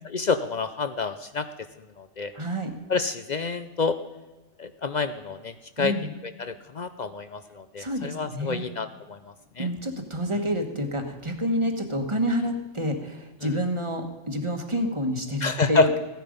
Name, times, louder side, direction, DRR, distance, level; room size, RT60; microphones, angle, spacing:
voice 1, 0.0-1.5 2.0-2.3 2.9-4.0 4.6-5.9 6.2-9.2 9.6-9.7 13.4-13.5 15.4-15.9, left 4 dB, 55° left, 11 dB, 0.5 m, -28 dB
voice 2, 2.3-2.7 5.8-6.1 7.8-8.6 9.6-16.0, equal, 25° right, 5 dB, 1.3 m, -28 dB
15.0 x 10.0 x 5.2 m, 1.2 s
omnidirectional pair, 1.3 m